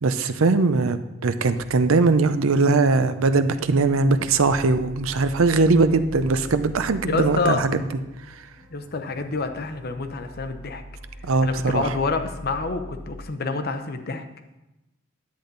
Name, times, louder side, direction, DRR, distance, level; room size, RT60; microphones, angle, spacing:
voice 1, 0.0-7.8 11.2-11.9, right 3 dB, 85° right, 11 dB, 0.6 m, -20 dB
sound 1, 1.5-13.2, left 1 dB, 30° right, 1.5 m, -43 dB
voice 2, 7.0-7.6 8.7-10.8 11.4-14.2, left 4 dB, 50° left, 7 dB, 0.8 m, -27 dB
10.5 x 8.4 x 3.9 m, 0.97 s
head